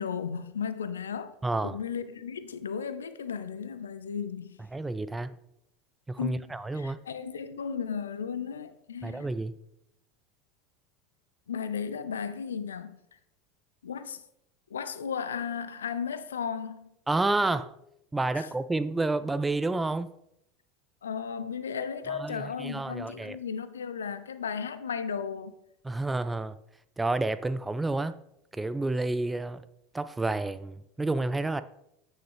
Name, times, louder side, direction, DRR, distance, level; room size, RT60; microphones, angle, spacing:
voice 1, 0.0-1.3 1.6-4.6 6.2-9.3 11.5-13.0 13.8-14.2 14.7-16.9 18.3-18.5 21.0-25.6, left 6 dB, 75° left, 0.5 m, -35 dB
voice 2, 1.4-1.8 4.7-5.3 6.1-7.0 9.0-9.5 17.1-17.7 18.1-20.1 22.1-23.4 25.8-26.6 27.0-28.2 28.5-29.6 29.9-31.6, right 2 dB, 10° right, 0.3 m, -30 dB
9.2 x 6.3 x 3.5 m
figure-of-eight pair, 75°, 0 cm